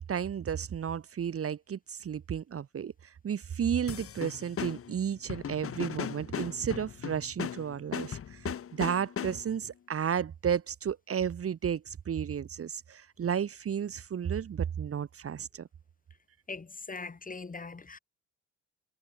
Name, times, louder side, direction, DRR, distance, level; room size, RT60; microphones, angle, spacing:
voice 1, 0.1-15.7, right 8 dB, 50° right, 2.0 m, -33 dB
sound 1, 3.9-9.6, left 8 dB, 45° left, 1.3 m, -38 dB
voice 2, 16.5-18.0, left 4 dB, 25° left, 5.3 m, -41 dB
cardioid pair, 90°, 30 cm